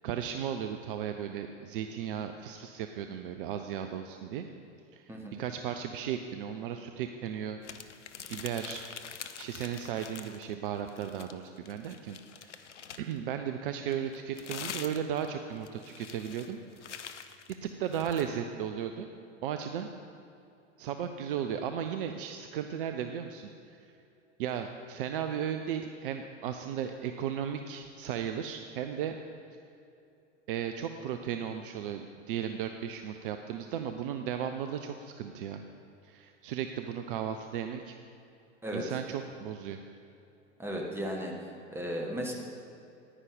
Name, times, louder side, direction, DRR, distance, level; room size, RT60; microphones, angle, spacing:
voice 1, 0.0-4.5 4.9-7.6 8.3-8.8 9.4-12.7 13.0-16.6 16.9-17.2 17.6-19.1 19.4-19.9 20.8-23.8 24.4-29.2 30.5-35.6 36.0-38.0 38.7-39.8, right 9 dB, 45° right, 7 dB, 0.6 m, -35 dB
sound 1, 7.6-10.5 10.8-13.2 13.9-18.3, left 8 dB, 75° left, 0.6 m, -45 dB
voice 2, 40.6-42.3, equal, 5° right, 0 dB, 1.5 m, -35 dB
9.9 x 9.8 x 5.1 m, 2.7 s
figure-of-eight pair, 85°, 36 cm